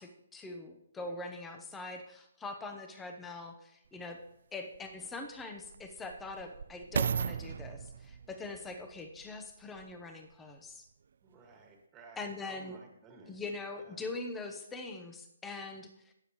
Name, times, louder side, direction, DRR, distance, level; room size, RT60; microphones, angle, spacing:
voice 1, 0.0-4.2 4.5-10.9 12.2-12.8 13.3-16.1, left 3 dB, 10° left, 5 dB, 0.9 m, -43 dB
sound 1, 3.9-4.0 4.7-10.0 10.7-10.8, right 6 dB, 65° right, 0.4 m, -37 dB
voice 2, 11.2-13.4 13.8-14.0, right 3 dB, 15° right, 2 dB, 1.9 m, -55 dB
18.0 x 7.0 x 3.1 m, 0.76 s
hypercardioid pair, 160°, 0 cm